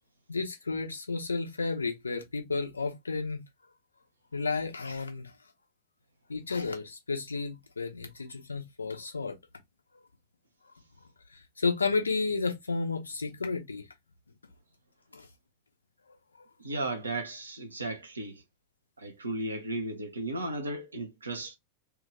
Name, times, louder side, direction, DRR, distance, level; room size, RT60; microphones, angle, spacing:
voice 1, 0.3-3.4 4.3-5.3 6.3-9.3 10.6-10.7 11.3-13.8 15.1-15.3 16.4-16.5, left 4 dB, 75° left, 0.9 m, -32 dB
voice 2, 16.6-18.4 19.0-21.6, right 2 dB, 75° right, 0.9 m, -35 dB
3.2 x 2.6 x 3.2 m
figure-of-eight pair, 90°, 0 cm